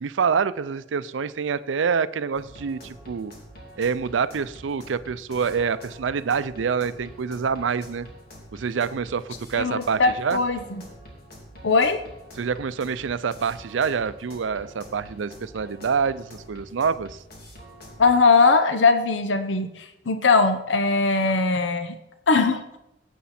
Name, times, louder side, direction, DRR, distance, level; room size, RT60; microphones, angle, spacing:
voice 1, 0.0-3.3 3.8-8.1 8.5-10.4 12.4-17.2, right 6 dB, 85° right, 15 dB, 0.5 m, -26 dB
sound 1, 2.3-18.2, equal, 55° left, 2.8 m, -46 dB
voice 2, 9.5-10.6 11.6-12.0 18.0-22.0 22.3-22.6, left 4 dB, 75° left, 8 dB, 0.8 m, -20 dB
18.0 x 8.3 x 4.3 m, 0.92 s
head